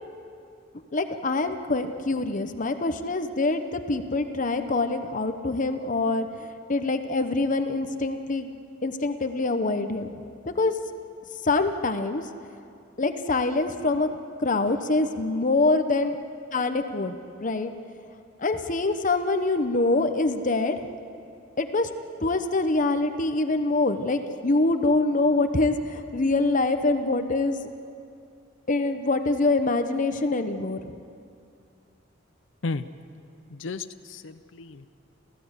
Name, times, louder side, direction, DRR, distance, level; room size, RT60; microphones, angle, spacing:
voice 1, 0.9-8.5 8.8-10.1 10.5-10.7 11.4-12.2 13.0-14.1 14.4-16.2 16.5-17.7 18.4-20.8 21.6-21.9 22.2-27.6 28.7-30.8, left 2 dB, 40° left, 8 dB, 1.0 m, -25 dB
voice 2, 33.5-34.9, left 3 dB, 70° left, 10 dB, 0.6 m, -33 dB
28.0 x 15.5 x 8.2 m, 2.5 s
head